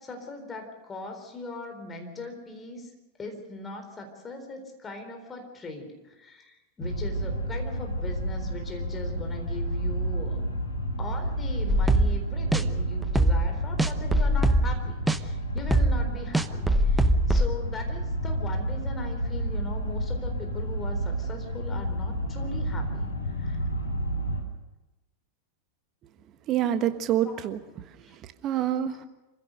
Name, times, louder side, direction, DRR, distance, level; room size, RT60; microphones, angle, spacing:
voice 1, 0.0-2.9 3.2-10.5 11.0-23.1 23.4-23.6 27.2-27.3 28.1-28.2 28.5-28.6, left 2 dB, 20° left, 4 dB, 4.0 m, -40 dB
sound 1, 6.8-24.4, right 1 dB, 80° left, 3.4 m, -30 dB
sound 2, 11.7-12.2 12.5-12.6 13.0-13.5 13.8-14.8 15.1-15.2 15.6-17.5, right 1 dB, 5° right, 0.9 m, -22 dB
voice 2, 26.5-29.1, right 11 dB, 35° right, 10 dB, 1.4 m, -28 dB
27.0 x 16.0 x 6.6 m, 1.1 s
figure-of-eight pair, 90°, 0 cm